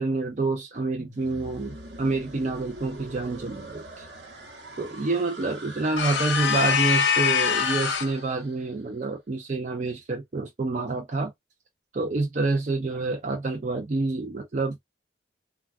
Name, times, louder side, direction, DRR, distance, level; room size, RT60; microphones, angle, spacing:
voice 1, 0.0-4.1 4.8-11.3 11.9-14.8, right 3 dB, 40° right, 0.5 m, -28 dB
sound 1, 1.0-8.9, right 2 dB, 60° right, 1.0 m, -43 dB
sound 2, 6.0-8.2, left 7 dB, 70° left, 0.5 m, -23 dB
3.3 x 2.3 x 2.3 m
head